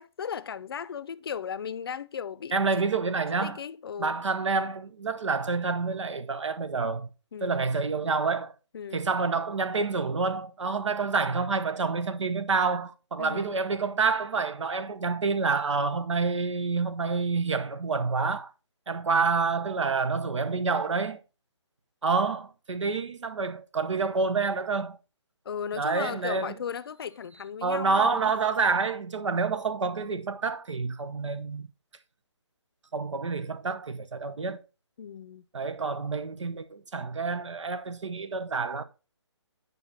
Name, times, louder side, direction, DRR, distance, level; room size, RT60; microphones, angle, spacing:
voice 1, 0.0-2.6 3.4-4.2 7.3-7.6 8.7-9.1 13.2-13.5 25.5-28.3 35.0-35.5, left 7 dB, 55° left, 0.5 m, -36 dB
voice 2, 2.5-3.6 4.0-7.1 7.4-8.5 8.9-18.5 18.9-21.2 22.0-25.0 25.8-26.5 27.6-31.7 32.9-34.6 35.5-38.8, right 4 dB, 85° right, 0.9 m, -28 dB
9.2 x 5.4 x 2.8 m
hypercardioid pair, 155°, 15 cm